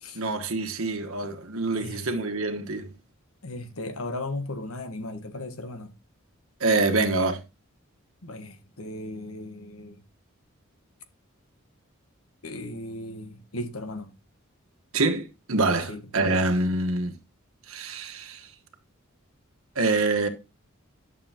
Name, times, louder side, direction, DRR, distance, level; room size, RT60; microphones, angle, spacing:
voice 1, 0.1-2.9 6.6-7.4 14.9-17.1 17.7-18.5 19.7-20.3, right 3 dB, 80° right, 1.3 m, -25 dB
voice 2, 1.8-2.1 3.4-5.9 8.2-10.0 12.4-14.1 15.9-16.0, left 2 dB, 85° left, 1.3 m, -36 dB
11.5 x 6.8 x 2.9 m
head